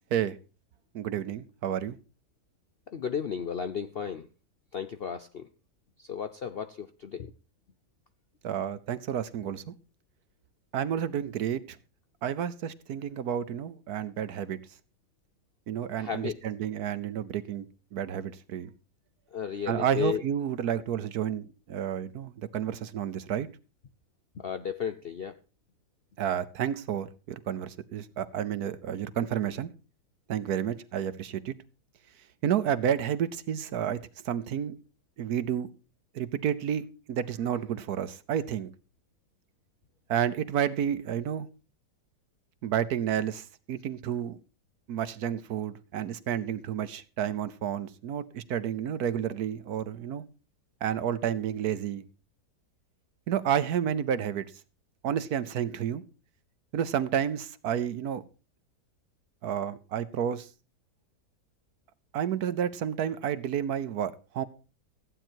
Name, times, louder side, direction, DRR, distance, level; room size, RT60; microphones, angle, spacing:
voice 1, 0.9-2.0 8.4-9.7 10.7-11.8 12.2-14.6 15.7-17.7 17.9-18.7 19.7-23.5 26.2-29.7 30.3-31.5 32.4-34.0 34.2-34.8 35.2-35.7 36.1-38.7 40.1-41.5 42.6-44.4 44.9-50.2 50.8-52.0 53.3-54.5 55.0-56.0 56.7-58.2 59.4-60.5 62.1-64.4, right 9 dB, 65° right, 1.3 m, -30 dB
voice 2, 2.9-4.3 4.7-5.5 6.0-7.3 16.0-16.4 19.3-20.2 24.3-25.4, left 7 dB, 60° left, 0.6 m, -34 dB
15.0 x 9.1 x 4.5 m
omnidirectional pair, 1.8 m